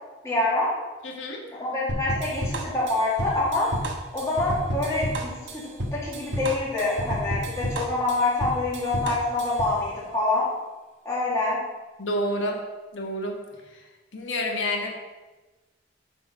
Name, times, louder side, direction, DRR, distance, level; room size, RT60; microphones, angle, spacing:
voice 1, 0.2-0.7 1.6-3.7 4.1-5.6 5.9-10.5 11.0-11.6, left 2 dB, 15° left, -7 dB, 1.8 m, -26 dB
voice 2, 1.0-1.4 12.0-12.6 12.9-13.3 14.1-14.9, left 1 dB, 80° left, 1 dB, 1.3 m, -28 dB
sound 1, 1.9-9.8, right 1 dB, 70° right, 1.1 m, -31 dB
8.3 x 4.1 x 6.0 m, 1.2 s
head